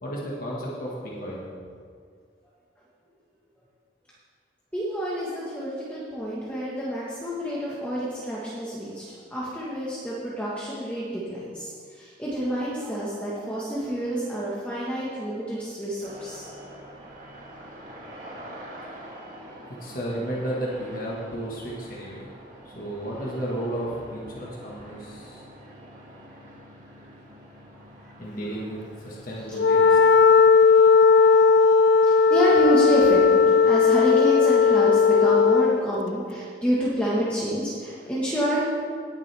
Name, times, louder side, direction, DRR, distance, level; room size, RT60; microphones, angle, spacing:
voice 1, 0.0-1.5 19.8-22.3 22.6-25.4 28.2-28.8 29.0-30.0, right 1 dB, 50° left, -5 dB, 1.6 m, -33 dB
voice 2, 4.7-9.0 9.3-16.5 30.3-30.4 32.1-38.6, equal, 5° left, -8 dB, 1.4 m, -28 dB
sound 1, 16.0-30.5, right 1 dB, 45° right, 1.7 m, -45 dB
Wind instrument woodwind instrument, 29.5-35.8, left 5 dB, 65° left, 0.3 m, -17 dB
18.5 x 7.4 x 3.5 m, 2.1 s
head